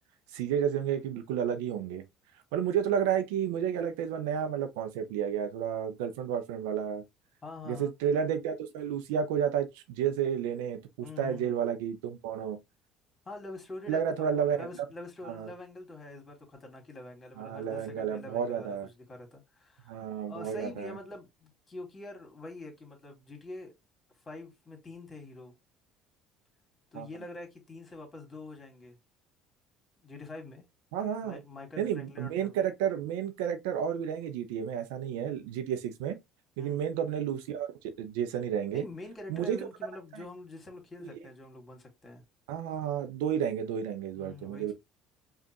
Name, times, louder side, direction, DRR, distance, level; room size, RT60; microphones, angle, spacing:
voice 1, 0.3-2.0 2.5-7.0 7.7-12.6 13.9-14.8 15.2-15.5 17.4-18.9 19.9-21.0 26.9-27.1 30.9-31.4 31.8-36.2 36.6-38.8 39.3-39.7 40.1-40.2 41.0-41.1 42.5-44.7, right 8 dB, 75° right, 0.6 m, -31 dB
voice 2, 7.4-7.9 11.0-11.5 13.3-23.7 24.3-25.5 26.9-29.0 30.0-30.6 31.2-32.6 36.6-36.9 38.7-42.2 44.1-44.7, left 2 dB, 30° left, 2.0 m, -45 dB
5.0 x 2.5 x 2.9 m
hypercardioid pair, 65°, 0 cm